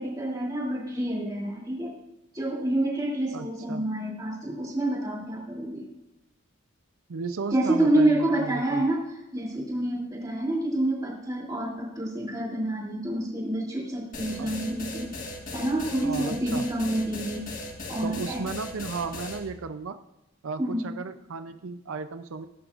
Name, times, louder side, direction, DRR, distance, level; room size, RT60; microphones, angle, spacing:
voice 1, 0.0-2.0 2.3-5.9 7.5-9.0 9.3-15.1 15.5-17.5 17.9-18.4 20.6-20.9, right 1 dB, 20° right, -3 dB, 2.9 m, -28 dB
voice 2, 3.3-3.8 7.1-8.8 14.4-14.5 16.0-16.7 18.0-20.0 20.4-22.5, right 4 dB, 85° right, 10 dB, 0.5 m, -35 dB
sound 1, 14.1-19.4, left 2 dB, 40° left, 1.6 m, -37 dB
18.0 x 11.0 x 2.5 m, 0.93 s
head